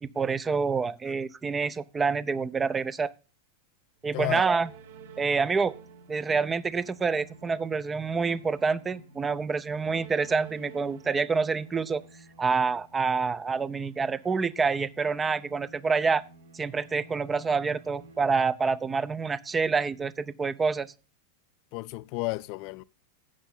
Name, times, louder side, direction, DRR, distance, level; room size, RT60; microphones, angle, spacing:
voice 1, 0.0-3.1 4.0-4.7 5.2-5.7 6.1-12.0 12.4-16.2 16.5-20.9, right 5 dB, 15° right, 0.6 m, -27 dB
sound 1, 4.0-19.2, right 4 dB, 65° right, 1.5 m, -52 dB
voice 2, 21.7-22.8, left 21 dB, 45° left, 0.4 m, -32 dB
13.0 x 9.0 x 3.7 m
figure-of-eight pair, 90°, 0 cm